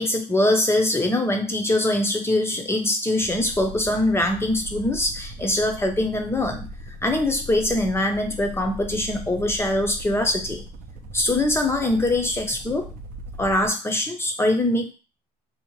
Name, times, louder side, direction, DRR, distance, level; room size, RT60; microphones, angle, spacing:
voice 1, 0.0-6.7 7.0-10.6 11.1-12.9 13.4-14.9, left 1 dB, 15° left, 3 dB, 0.5 m, -23 dB
sound 1, 3.2-13.8, right 1 dB, 55° right, 0.4 m, -39 dB
2.7 x 2.1 x 3.0 m, 0.32 s
cardioid pair, 110°, 17 cm